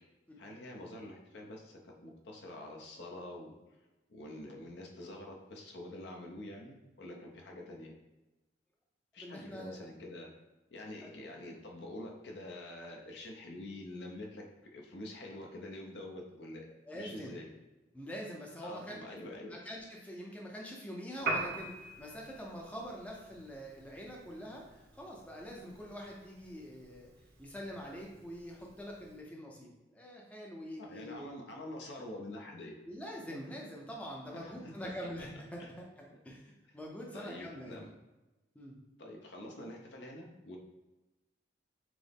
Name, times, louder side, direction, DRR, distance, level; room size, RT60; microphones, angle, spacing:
voice 1, 0.4-3.5 4.1-7.9 9.1-10.3 10.7-14.4 14.7-16.7 16.9-17.5 18.6-19.6 30.8-32.7 34.3-34.9 35.6-35.7 36.1-36.2 37.1-37.9 39.0-40.6, left 1 dB, 65° left, 0 dB, 0.7 m, -46 dB
voice 2, 9.2-9.8 11.0-11.1 16.9-17.4 17.9-19.0 19.4-27.1 27.4-31.3 32.9-37.9 38.5-38.8, equal, 5° left, -2 dB, 0.5 m, -45 dB
Piano, 21.2-29.2, right 2 dB, 55° right, 0.8 m, -44 dB
6.1 x 2.0 x 3.4 m, 1.1 s
head